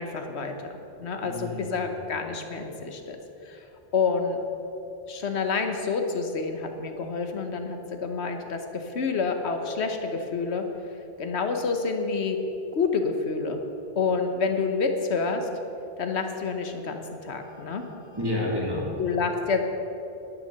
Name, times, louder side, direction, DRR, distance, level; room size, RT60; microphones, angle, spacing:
voice 1, 0.0-3.2 3.4-3.7 3.9-4.4 5.1-10.6 11.2-12.4 12.7-13.6 14.0-15.5 16.0-17.8 19.0-19.6, left 4 dB, 80° left, 5 dB, 1.2 m, -28 dB
voice 2, 1.2-2.1 17.4-18.9, left 1 dB, 20° right, -5 dB, 2.7 m, -32 dB
10.5 x 9.4 x 6.7 m, 2.9 s
omnidirectional pair, 1.1 m